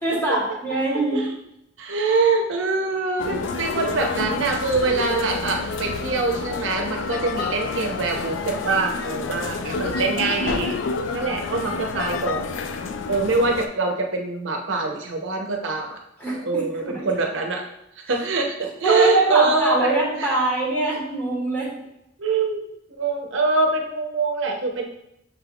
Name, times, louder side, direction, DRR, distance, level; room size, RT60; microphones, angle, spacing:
voice 1, 0.0-1.2 16.2-17.0 18.8-21.7, right 2 dB, 10° left, -5 dB, 1.4 m, -23 dB
voice 2, 1.8-10.8 11.1-12.5 13.1-16.0 16.4-17.6 18.1-20.3 22.2-22.6 23.0-24.9, right 3 dB, 90° right, 2 dB, 0.7 m, -24 dB
sound 1, 3.2-13.7, left 4 dB, 80° left, 0.4 m, -29 dB
6.2 x 3.4 x 2.3 m, 0.80 s
head